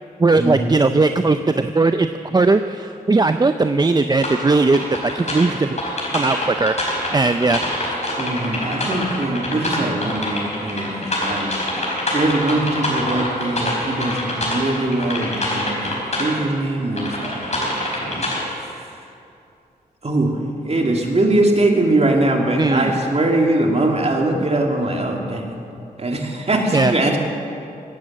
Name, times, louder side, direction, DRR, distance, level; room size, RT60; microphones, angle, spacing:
voice 1, 0.2-5.8 6.1-6.8 7.1-7.6 22.6-22.9 26.7-26.9, right 3 dB, 25° right, 9 dB, 0.5 m, -18 dB
sound 1, 4.2-16.3 16.8-18.6, left 1 dB, 45° left, 4.8 m, -25 dB
voice 2, 8.2-11.5 11.8-11.9 12.1-15.9 16.2-18.3 18.6-18.9 20.0-20.4 20.6-25.5 26.0-27.2, right 2 dB, 40° right, 1 dB, 2.5 m, -21 dB
18.0 x 9.0 x 7.5 m, 2.6 s
cardioid pair, 50°, 16 cm